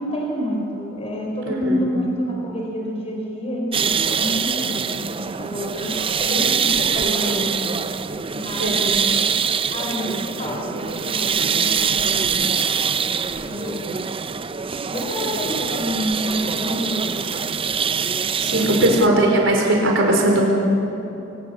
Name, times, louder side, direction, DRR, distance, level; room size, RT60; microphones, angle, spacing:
voice 1, 0.0-5.9 6.2-7.4 8.3-9.1 9.7-12.6 13.4-13.8 14.8-17.3 18.4-18.9, equal, 30° left, -1 dB, 5.3 m, -28 dB
voice 2, 1.5-1.8 7.0-7.4 8.6-8.8 18.4-20.4, right 1 dB, 65° right, 0 dB, 5.0 m, -19 dB
sound 1, 3.7-19.1, right 6 dB, 25° right, 0.6 m, -24 dB
24.0 x 17.5 x 7.2 m, 2.9 s
head